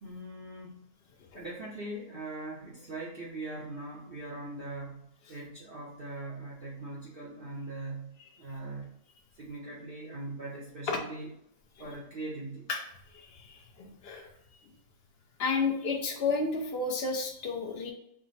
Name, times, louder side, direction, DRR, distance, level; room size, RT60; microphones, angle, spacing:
voice 1, 0.0-0.8 1.3-9.0 9.3-11.3 11.8-12.7, right 2 dB, 50° right, -5 dB, 0.7 m, -41 dB
voice 2, 13.1-14.3 15.4-17.9, left 4 dB, 50° left, 1 dB, 0.8 m, -32 dB
4.8 x 2.1 x 4.0 m, 0.76 s
omnidirectional pair, 1.7 m